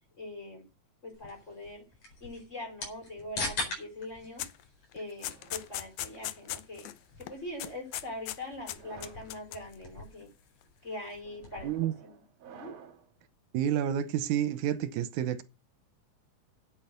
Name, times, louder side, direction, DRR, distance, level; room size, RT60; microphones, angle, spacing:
voice 1, 0.2-0.6 1.0-1.8 2.2-4.4 4.9-6.9 7.2-10.3 10.8-11.7 12.0-12.7, left 1 dB, 20° left, 4.5 m, -42 dB
sound 1, 1.1-11.8, left 2 dB, 65° left, 5.7 m, -44 dB
sound 2, 4.4-4.6 4.9-7.0 7.2-7.3 7.6-8.4 8.7-9.7, left 13 dB, 80° left, 2.1 m, -38 dB
sound 3, 5.2-6.6 7.4-7.8 8.6-9.3 10.0-10.3 11.2-13.1, right 8 dB, 65° right, 2.8 m, -54 dB
voice 2, 13.5-15.4, right 10 dB, 85° right, 2.3 m, -29 dB
9.2 x 9.0 x 6.6 m
omnidirectional pair, 3.5 m